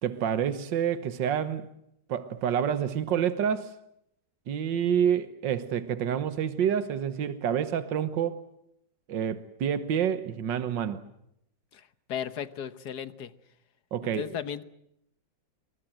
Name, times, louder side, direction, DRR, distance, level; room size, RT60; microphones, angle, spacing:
voice 1, 0.0-1.7 2.1-3.7 4.5-8.4 9.1-11.0 13.9-14.3, right 8 dB, 80° right, 1.9 m, -28 dB
voice 2, 11.7-13.3 14.0-14.6, left 8 dB, 60° left, 1.7 m, -36 dB
27.0 x 23.0 x 7.7 m
omnidirectional pair, 2.0 m